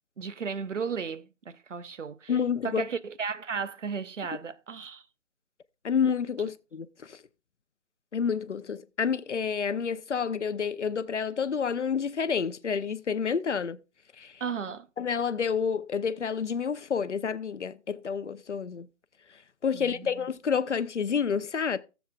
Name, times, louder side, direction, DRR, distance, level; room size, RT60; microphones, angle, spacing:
voice 1, 0.2-2.3 2.6-5.0 14.4-14.9 19.7-20.3, right 6 dB, 70° right, 0.8 m, -35 dB
voice 2, 2.3-2.8 5.8-7.2 8.1-13.8 14.2-14.3 15.0-18.9 19.6-21.8, left 6 dB, 65° left, 0.7 m, -29 dB
17.0 x 7.2 x 2.4 m
figure-of-eight pair, 165°, 38 cm